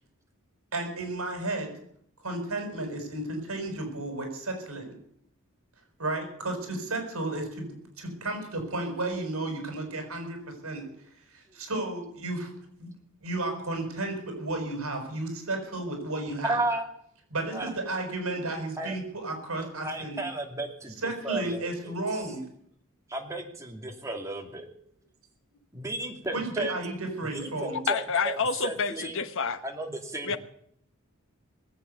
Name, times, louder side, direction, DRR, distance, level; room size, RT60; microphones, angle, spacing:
voice 1, 0.7-1.7 2.2-5.0 6.0-10.8 11.3-12.5 12.8-12.9 13.2-16.6 17.3-20.2 21.0-22.4 26.3-27.8, right 2 dB, 70° right, 4 dB, 5.8 m, -33 dB
voice 2, 16.5-16.9 17.5-17.7 18.8-19.0 19.6-21.0 21.2-21.9 23.1-24.7 25.7-26.7 27.3-28.4 28.6-29.2 29.6-30.4, right 2 dB, 15° right, 2 dB, 2.5 m, -34 dB
voice 3, 27.9-29.6 30.3-30.4, left 5 dB, 60° left, 11 dB, 1.1 m, -28 dB
20.5 x 8.5 x 8.0 m, 0.67 s
head